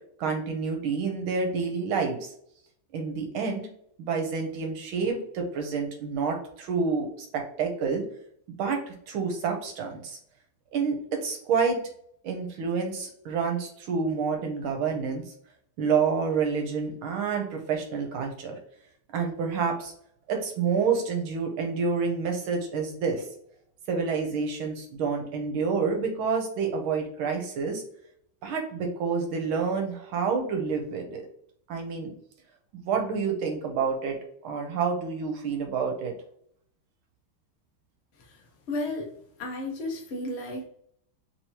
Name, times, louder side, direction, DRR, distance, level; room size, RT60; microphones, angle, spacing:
voice 1, 0.2-2.3 2.9-3.7 4.0-7.1 7.3-8.0 8.6-10.2 10.7-11.8 12.2-15.2 15.8-18.6 19.1-19.9 20.3-23.2 23.9-27.8 28.4-31.2 31.7-32.1 32.7-34.2 34.4-36.1, right 5 dB, 75° right, 3 dB, 1.5 m, -28 dB
voice 2, 38.7-39.1 39.4-40.6, left 2 dB, 65° left, 0 dB, 0.6 m, -33 dB
3.8 x 3.1 x 2.8 m, 0.66 s
omnidirectional pair, 2.4 m